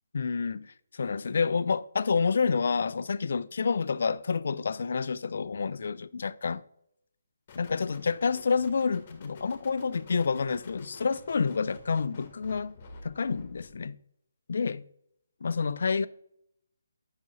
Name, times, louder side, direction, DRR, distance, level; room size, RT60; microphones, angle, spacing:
voice 1, 0.1-6.6 7.5-12.7 13.0-14.0 14.5-14.8 15.4-16.1, left 5 dB, 60° left, 0.3 m, -28 dB
sound 1, 7.5-13.8, left 3 dB, 35° left, 1.4 m, -50 dB
8.2 x 5.8 x 3.0 m
figure-of-eight pair, 155°, 0 cm